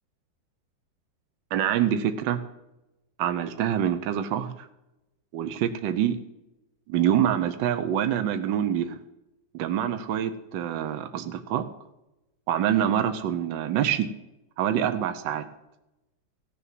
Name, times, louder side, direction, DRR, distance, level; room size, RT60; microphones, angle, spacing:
voice 1, 1.5-2.4 3.2-4.5 5.3-6.2 6.9-9.0 9.5-11.7 12.5-14.1 14.6-15.5, right 10 dB, 75° right, 9 dB, 1.5 m, -25 dB
15.5 x 7.0 x 7.6 m, 0.94 s
omnidirectional pair, 2.0 m